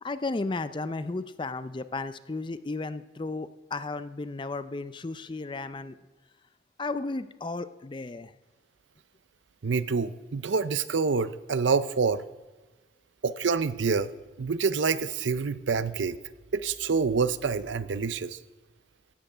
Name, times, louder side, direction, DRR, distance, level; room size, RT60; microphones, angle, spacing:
voice 1, 0.0-6.0 6.8-8.3, left 3 dB, 25° left, 13 dB, 0.4 m, -34 dB
voice 2, 9.6-12.2 13.2-14.1 14.4-16.2 16.5-18.4, right 5 dB, 70° right, 15 dB, 0.5 m, -27 dB
16.0 x 8.9 x 5.6 m, 1.2 s
head